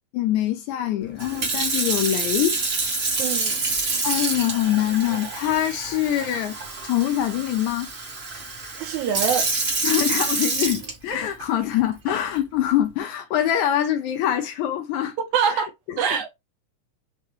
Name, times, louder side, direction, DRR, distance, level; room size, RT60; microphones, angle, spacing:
voice 1, 0.1-2.6 4.0-6.6 6.8-7.9 9.8-15.2 15.5-16.0, left 11 dB, 80° left, 2.0 m, -24 dB
Sink (filling or washing) / Fill (with liquid), 1.2-11.4 12.1-12.4, right 3 dB, 55° right, 0.8 m, -27 dB
voice 2, 3.2-3.6 8.8-9.5 15.3-15.7 16.0-16.3, right 7 dB, 80° right, 2.1 m, -24 dB
5.3 x 2.5 x 3.1 m
omnidirectional pair, 3.4 m